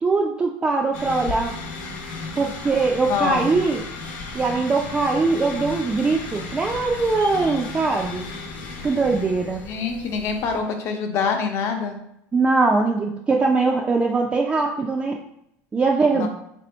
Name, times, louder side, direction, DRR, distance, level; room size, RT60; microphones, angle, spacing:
voice 1, 0.0-1.5 2.4-3.8 4.3-8.2 8.8-9.6 12.3-15.2 15.7-16.3, right 3 dB, 20° right, 0 dB, 0.4 m, -21 dB
sound 1, 0.9-10.6, left 3 dB, 85° left, 0.9 m, -35 dB
voice 2, 3.1-3.5 9.6-12.0 16.1-16.3, left 5 dB, 50° left, 4 dB, 0.8 m, -25 dB
3.4 x 2.7 x 4.2 m, 0.76 s
supercardioid pair, 130°, 6 cm